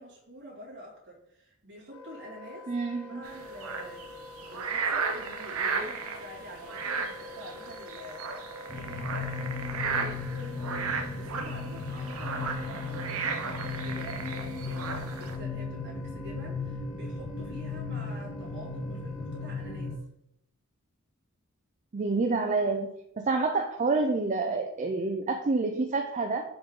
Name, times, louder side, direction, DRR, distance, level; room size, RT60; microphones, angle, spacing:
voice 1, 0.0-2.7 3.0-4.0 4.5-8.3 8.7-14.2 14.6-20.0, right 1 dB, 55° right, -5 dB, 2.3 m, -47 dB
Wind instrument woodwind instrument, 1.9-20.1, left 3 dB, 85° left, 0.9 m, -48 dB
voice 2, 2.7-3.2 21.9-26.4, right 3 dB, 35° right, 4 dB, 0.4 m, -28 dB
sound 1, 3.2-15.4, right 5 dB, 75° right, 0.7 m, -35 dB
sound 2, 8.7-20.0, left 4 dB, 35° left, 0.7 m, -36 dB
6.9 x 3.9 x 3.6 m, 0.78 s
head